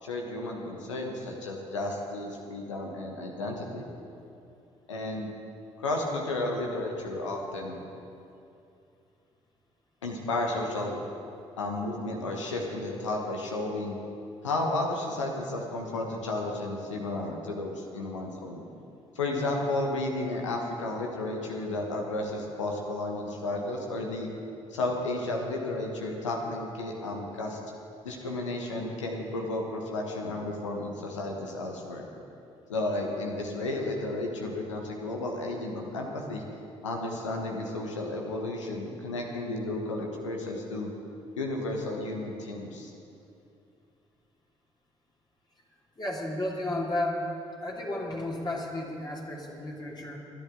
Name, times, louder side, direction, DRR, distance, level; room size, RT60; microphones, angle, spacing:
voice 1, 0.0-3.8 4.9-5.3 5.8-7.8 10.0-11.0 11.6-14.0 14.4-18.7 19.1-24.3 24.7-27.6 28.0-32.1 32.7-36.4 36.8-40.9 41.4-42.9, left 2 dB, 85° left, 1 dB, 1.3 m, -32 dB
voice 2, 46.0-47.3 47.6-50.2, left 1 dB, 25° left, -3 dB, 2.7 m, -33 dB
28.0 x 10.5 x 3.9 m, 2.7 s
figure-of-eight pair, 45°, 15 cm